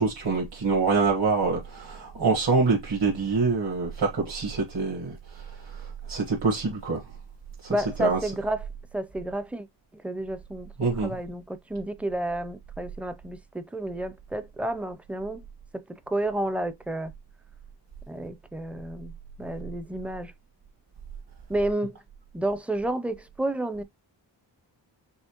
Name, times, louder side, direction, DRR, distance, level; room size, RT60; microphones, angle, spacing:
voice 1, 0.0-7.0 7.6-8.2 10.8-11.1, right 4 dB, 60° right, 1.5 m, -26 dB
voice 2, 7.7-8.7 8.9-9.7 9.9-15.5 15.7-17.1 18.1-19.1 19.4-20.3 21.5-22.0 22.3-23.8, right 1 dB, 5° right, 0.5 m, -31 dB
5.6 x 3.2 x 2.9 m
wide cardioid pair, 105°, 45 cm